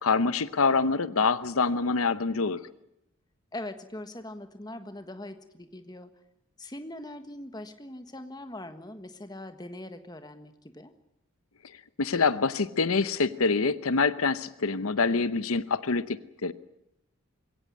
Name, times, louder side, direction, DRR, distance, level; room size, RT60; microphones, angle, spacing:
voice 1, 0.0-2.6 12.0-16.5, left 4 dB, 80° left, 14 dB, 0.9 m, -25 dB
voice 2, 3.5-6.1 6.6-10.9, left 1 dB, 20° left, 8 dB, 1.4 m, -41 dB
22.0 x 17.0 x 9.4 m, 0.85 s
head